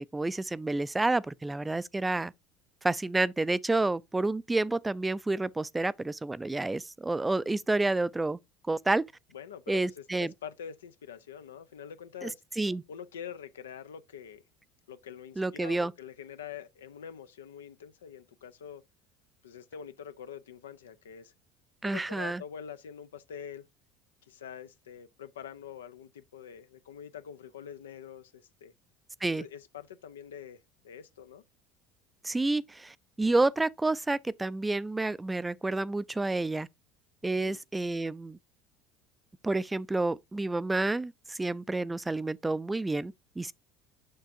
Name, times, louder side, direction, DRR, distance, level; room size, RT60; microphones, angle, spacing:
voice 1, 0.0-2.3 2.8-8.4 8.7-9.1 9.7-10.3 12.2-12.3 12.6-12.8 15.4-15.9 21.8-22.4 29.2-29.5 32.2-36.7 37.2-38.4 39.4-43.5, right 2 dB, 15° right, 0.3 m, -29 dB
voice 2, 9.3-12.4 12.9-14.4 14.9-18.8 19.4-21.3 21.8-23.7 24.3-28.7 29.3-30.6 30.8-31.4 37.3-37.6, left 8 dB, 90° left, 0.5 m, -45 dB
6.5 x 6.0 x 2.6 m
hypercardioid pair, 75°, 0 cm